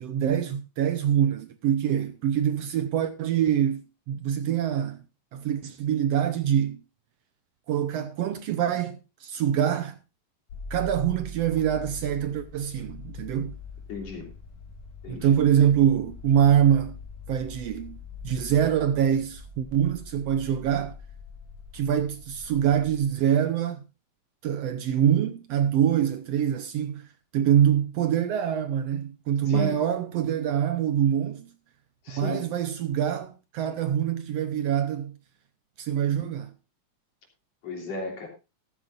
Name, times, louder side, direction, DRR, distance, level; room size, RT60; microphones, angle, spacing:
voice 1, 0.0-5.0 5.3-6.8 7.7-10.0 10.7-13.5 15.1-17.0 17.3-18.0 18.2-20.9 21.7-23.8 24.4-27.1 27.3-31.5 32.1-35.1 35.8-36.5, right 9 dB, 70° right, 1.7 m, -24 dB
sound 1, 10.5-23.0, left 3 dB, 85° left, 3.6 m, -43 dB
voice 2, 13.9-14.3 15.0-15.3 29.5-29.8 32.0-32.5 37.6-38.3, left 4 dB, 60° left, 4.5 m, -35 dB
14.5 x 13.5 x 2.5 m
omnidirectional pair, 3.3 m